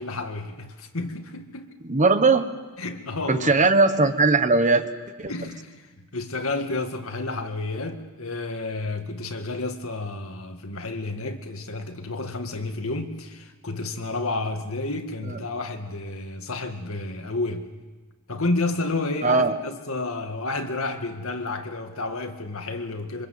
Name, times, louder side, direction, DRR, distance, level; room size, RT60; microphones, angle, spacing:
voice 1, 0.0-1.7 2.8-3.6 5.3-17.7 18.3-23.3, left 2 dB, 70° left, 5 dB, 2.0 m, -31 dB
voice 2, 1.9-2.5 3.3-4.9 5.2-5.3 19.2-19.5, right 3 dB, 35° right, 9 dB, 1.3 m, -19 dB
26.5 x 24.0 x 7.7 m, 1.3 s
head